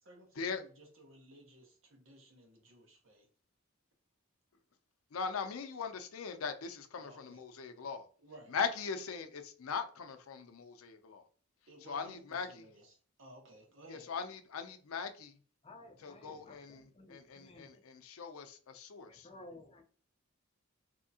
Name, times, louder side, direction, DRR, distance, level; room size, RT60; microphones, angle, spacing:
voice 1, 0.0-3.3 7.0-7.4 8.2-8.6 11.7-14.1, right 1 dB, 65° right, 1.0 m, -56 dB
voice 2, 5.1-8.1 8.5-11.3 11.8-12.6 13.9-15.3 16.0-19.3, left 5 dB, 90° left, 0.5 m, -40 dB
voice 3, 15.6-17.8 19.0-19.8, left 2 dB, 30° left, 0.6 m, -55 dB
3.5 x 2.8 x 2.7 m
head